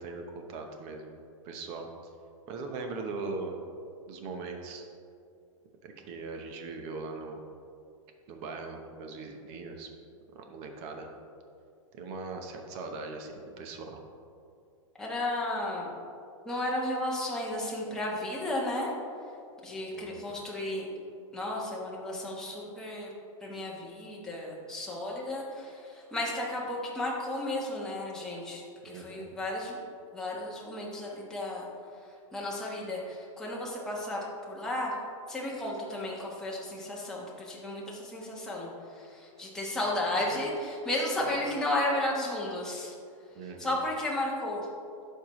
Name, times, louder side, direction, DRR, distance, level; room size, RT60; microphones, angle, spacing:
voice 1, 0.0-1.9 2.5-3.6 4.1-4.9 5.8-7.4 8.3-9.9 10.3-11.1 11.9-14.0 19.9-20.3 28.8-29.3 40.1-40.4 41.2-41.4 43.3-43.8, right 3 dB, 35° right, 4 dB, 0.9 m, -40 dB
voice 2, 15.0-15.9 16.4-18.9 19.6-20.9 21.3-23.1 23.4-29.8 30.1-31.7 32.3-34.9 35.3-42.9 43.6-44.7, left 1 dB, 5° left, -5 dB, 1.1 m, -33 dB
11.0 x 4.6 x 3.1 m, 2.4 s
hypercardioid pair, 145°, 17 cm